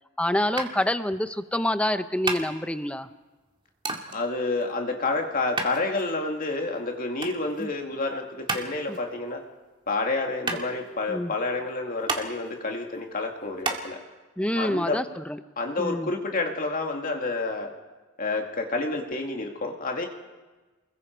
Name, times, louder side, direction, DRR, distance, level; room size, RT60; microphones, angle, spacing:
voice 1, 0.2-3.1 7.6-7.7 8.9-9.0 11.1-11.3 14.4-15.4 15.8-16.1, left 1 dB, 5° left, 11 dB, 0.8 m, -27 dB
sound 1, 0.6-13.8, right 3 dB, 25° right, 2.1 m, -35 dB
voice 2, 4.1-9.4 9.9-14.0 14.6-15.0 15.6-17.7 18.2-20.1, left 3 dB, 45° left, 2 dB, 2.3 m, -29 dB
29.5 x 21.5 x 4.6 m, 1.2 s
head